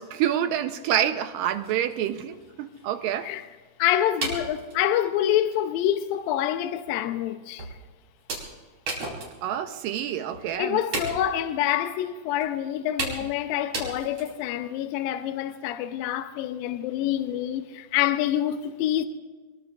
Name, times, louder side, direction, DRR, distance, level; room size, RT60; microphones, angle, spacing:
voice 1, 0.0-3.3 9.4-10.8, right 10 dB, 80° right, 2.3 m, -27 dB
sound 1, 1.1-1.2 1.5-3.4 4.2-4.8 5.5-5.7 6.1-6.2 6.9-7.0 7.6-7.8 8.3-9.6 9.9-10.0 10.3-10.5 10.9-11.4 12.4-12.5 13.0-13.4 13.7-14.5, right 2 dB, 45° right, 5.6 m, -34 dB
voice 2, 3.8-7.7 10.6-19.1, left 11 dB, 80° left, 2.4 m, -26 dB
25.0 x 23.0 x 2.4 m
omnidirectional pair, 4.2 m